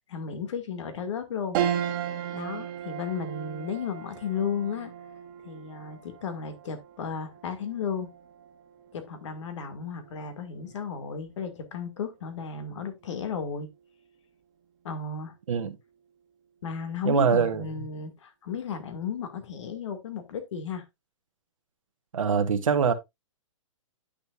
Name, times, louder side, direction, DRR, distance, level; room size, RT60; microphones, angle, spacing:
voice 1, 0.1-1.6 2.3-4.9 5.4-8.1 8.9-13.7 14.8-15.3 16.6-20.8, left 6 dB, 60° left, 2.1 m, -34 dB
sound 1, 1.5-11.1 11.6-11.7 13.0-13.5, right 9 dB, 40° right, 1.6 m, -36 dB
voice 2, 17.0-17.7 22.1-22.9, right 6 dB, 75° right, 1.3 m, -23 dB
10.0 x 6.7 x 2.4 m
hypercardioid pair, 130°, 17 cm